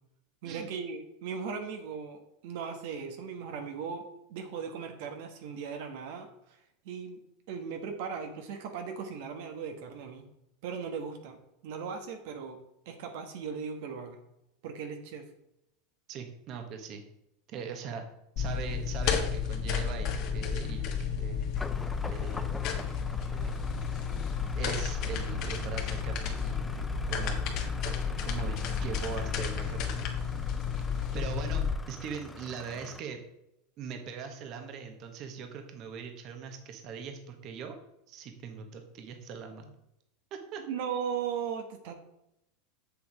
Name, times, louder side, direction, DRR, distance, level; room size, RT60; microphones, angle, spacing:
voice 1, 0.4-10.3 10.6-14.2 14.6-15.3 40.6-41.9, right 6 dB, 70° right, 5 dB, 1.3 m, -38 dB
voice 2, 16.1-17.0 17.5-18.0 18.4-21.5 22.1-22.7 23.3-23.6 24.5-27.4 27.8-30.1 31.1-33.2 33.8-37.8 38.1-39.7 40.3-40.6, right 6 dB, 45° right, 5 dB, 1.3 m, -41 dB
sound 1, 18.4-31.7, left 6 dB, 50° left, 1.5 m, -32 dB
sound 2, 21.6-33.0, left 2 dB, 10° left, 0.6 m, -44 dB
7.1 x 7.0 x 4.8 m, 0.84 s
supercardioid pair, 125°, 0 cm